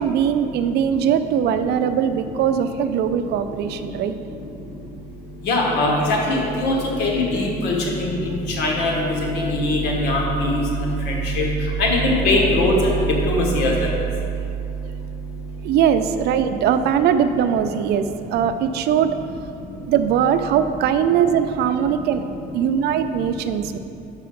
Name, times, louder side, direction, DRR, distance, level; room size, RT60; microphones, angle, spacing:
voice 1, 0.0-4.2 15.6-19.2 19.9-23.8, right 8 dB, 75° right, 9 dB, 0.4 m, -20 dB
voice 2, 5.4-11.4 11.8-13.9, left 1 dB, 85° left, -1 dB, 1.3 m, -21 dB
6.7 x 4.9 x 5.1 m, 2.6 s
cardioid pair, 110°, 17 cm